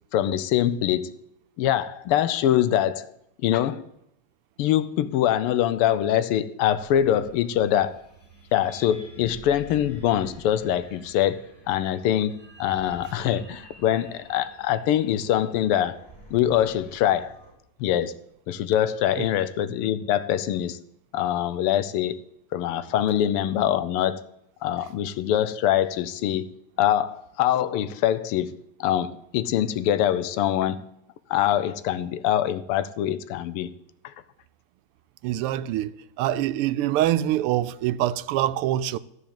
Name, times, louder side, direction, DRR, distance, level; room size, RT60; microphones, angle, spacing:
voice 1, 0.1-1.1 1.6-3.1 3.4-3.9 4.6-8.0 8.5-16.0 16.3-17.4 17.8-18.2 18.5-20.8 21.1-22.2 22.5-24.3 24.6-30.9 31.3-33.7 34.0-34.1, left 11 dB, 85° left, 1.6 m, -24 dB
sound 1, 6.7-17.5, right 1 dB, 10° left, 2.4 m, -49 dB
voice 2, 35.2-39.0, right 13 dB, 85° right, 1.5 m, -25 dB
13.5 x 4.8 x 8.6 m
omnidirectional pair, 2.4 m